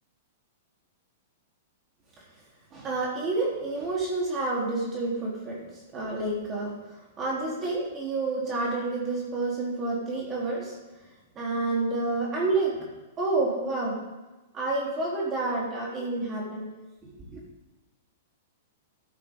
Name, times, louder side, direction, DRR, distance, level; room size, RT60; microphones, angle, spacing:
voice 1, 2.7-10.7 11.4-12.9 13.2-14.0 14.5-16.7 17.0-17.4, right 3 dB, 30° right, -4 dB, 3.8 m, -29 dB
13.0 x 10.0 x 3.9 m, 1.1 s
hypercardioid pair, 110°, 0 cm